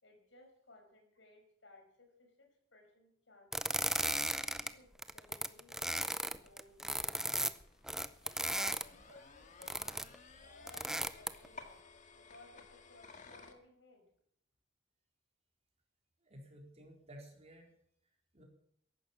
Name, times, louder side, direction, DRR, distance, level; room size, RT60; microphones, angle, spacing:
voice 1, 0.0-3.8 4.5-6.0 6.3-7.6 8.2-10.1 10.4-11.8 12.2-14.1, left 2 dB, 85° left, 4 dB, 5.3 m, -61 dB
sound 1, 3.5-4.7 5.0-8.8 9.6-10.2 10.7-11.5, right 1 dB, 5° right, 0.6 m, -35 dB
sound 2, 6.2-13.5, left 4 dB, 40° left, 1.8 m, -57 dB
voice 2, 16.2-17.7 18.3-18.4, equal, 35° right, 0 dB, 4.4 m, -54 dB
14.5 x 11.5 x 7.3 m, 0.68 s
head